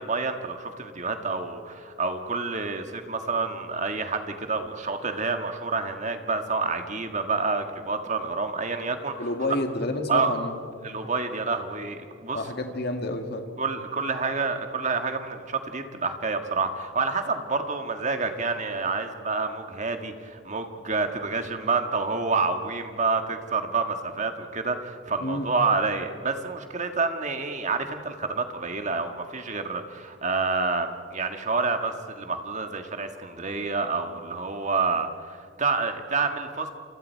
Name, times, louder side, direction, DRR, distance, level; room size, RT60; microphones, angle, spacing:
voice 1, 0.0-9.3 10.1-10.3 10.8-12.4 13.6-36.7, right 4 dB, 35° right, 6 dB, 1.7 m, -28 dB
voice 2, 9.2-10.6 12.3-13.5 25.2-25.5, left 1 dB, 50° left, 5 dB, 2.0 m, -29 dB
29.5 x 27.0 x 4.6 m, 2.3 s
head